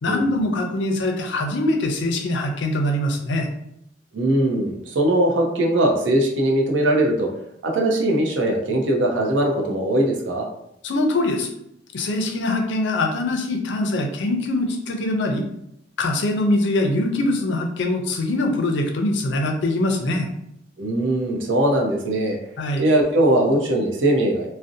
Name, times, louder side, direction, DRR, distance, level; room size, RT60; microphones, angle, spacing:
voice 1, 0.0-3.5 10.8-11.5 11.9-15.5 16.0-20.3 22.6-22.8, left 1 dB, 70° left, 4 dB, 0.4 m, -23 dB
voice 2, 4.1-7.3 7.6-10.5 20.8-22.4 22.8-24.5, right 1 dB, 80° right, 0 dB, 0.6 m, -20 dB
2.6 x 2.0 x 2.6 m, 0.78 s
head